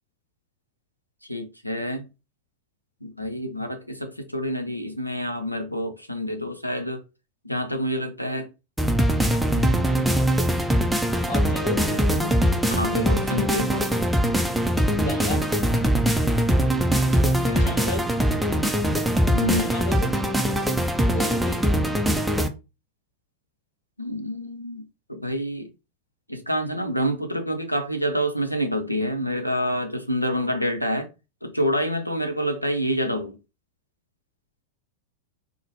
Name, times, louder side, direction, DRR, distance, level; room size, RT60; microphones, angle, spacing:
voice 1, 1.3-2.1 3.0-7.0 7.4-8.5 9.5-10.2 11.9-13.9 17.2-17.7 19.3-19.7 24.0-25.7 26.3-31.1 31.4-33.4, equal, 90° left, 0.6 m, -28 dB
sound 1, 8.8-22.5, equal, 5° right, 0.4 m, -22 dB
voice 2, 11.3-11.8 14.9-15.5 17.6-18.1 19.4-20.1 21.1-21.6, left 1 dB, 50° left, 0.8 m, -32 dB
3.9 x 2.0 x 3.0 m
figure-of-eight pair, 90°, 0 cm